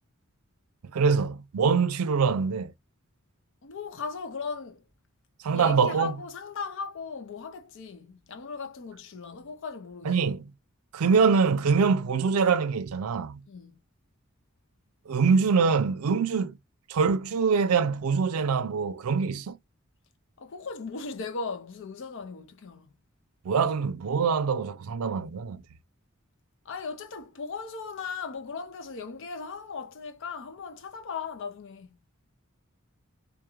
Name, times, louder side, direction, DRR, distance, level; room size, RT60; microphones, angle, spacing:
voice 1, 0.9-2.7 5.4-6.2 10.1-10.5 10.9-13.4 15.1-16.6 16.9-19.6 23.4-25.6, right 5 dB, 85° right, 0.4 m, -24 dB
voice 2, 3.6-4.8 5.5-10.2 13.5-13.7 16.4-16.5 20.4-22.9 26.7-32.0, left 4 dB, 60° left, 0.5 m, -37 dB
2.5 x 2.3 x 2.9 m
head